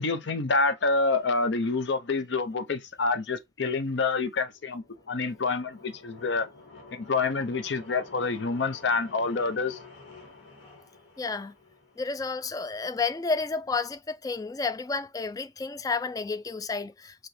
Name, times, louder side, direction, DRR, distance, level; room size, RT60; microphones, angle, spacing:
voice 1, 0.0-6.5 6.9-9.8, left 3 dB, 65° left, 0.6 m, -27 dB
sound 1, 4.4-12.2, left 3 dB, 85° left, 1.9 m, -50 dB
voice 2, 11.2-11.5 12.0-17.3, left 4 dB, 20° left, 0.3 m, -31 dB
5.0 x 3.0 x 3.1 m
head